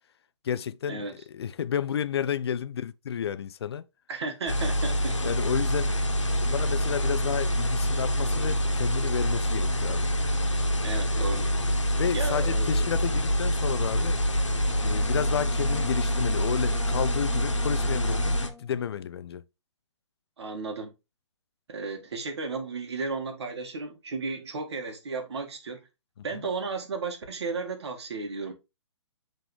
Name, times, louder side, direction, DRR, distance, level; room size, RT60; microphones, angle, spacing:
voice 1, 0.4-3.9 5.2-6.0 6.4-10.1 11.9-14.2 14.8-19.4 26.3-26.4, left 8 dB, 60° left, 0.4 m, -31 dB
voice 2, 4.1-5.2 10.8-11.5 12.1-12.8 20.4-20.9 21.7-25.8 26.2-28.5, right 4 dB, 60° right, 1.9 m, -34 dB
sound 1, 4.5-18.5, equal, 85° left, 1.3 m, -26 dB
Bowed string instrument, 14.7-18.9, left 5 dB, ahead, 0.4 m, -45 dB
7.6 x 3.9 x 3.2 m
hypercardioid pair, 140°, 15 cm